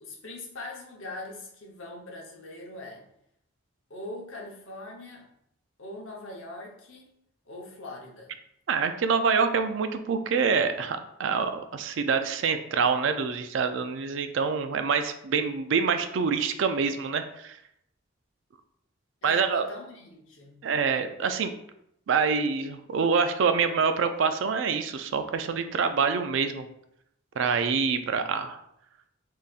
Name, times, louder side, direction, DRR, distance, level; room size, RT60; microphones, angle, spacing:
voice 1, 0.0-3.1 3.9-5.3 5.8-7.1 7.4-8.3 19.2-20.6, left 2 dB, 70° left, -1 dB, 0.9 m, -41 dB
voice 2, 8.7-17.6 19.2-19.7 20.6-21.5 22.1-26.7 27.4-28.6, right 5 dB, 65° right, 9 dB, 0.4 m, -26 dB
4.0 x 3.8 x 2.4 m, 0.76 s
head